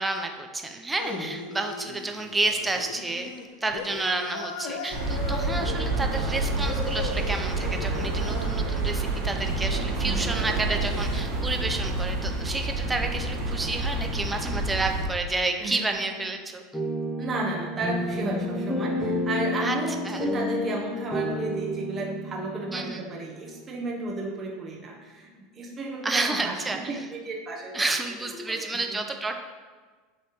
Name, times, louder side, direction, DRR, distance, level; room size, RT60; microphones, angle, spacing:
voice 1, 0.0-3.3 3.6-16.6 19.6-19.8 20.0-20.3 22.7-23.0 26.0-27.1 27.7-29.4, right 3 dB, 15° right, 4 dB, 0.8 m, -30 dB
sound 1, 1.0-11.2, left 4 dB, 70° left, 0.7 m, -38 dB
sound 2, 4.9-15.0, right 2 dB, 60° right, 1.8 m, -28 dB
sound 3, 16.7-23.7, left 1 dB, 10° left, 1.3 m, -30 dB
voice 2, 17.2-27.9 28.2-28.6 28.9-29.0, right 2 dB, 30° right, -2 dB, 1.3 m, -33 dB
7.7 x 3.2 x 4.6 m, 1.4 s
hypercardioid pair, 90°, 0 cm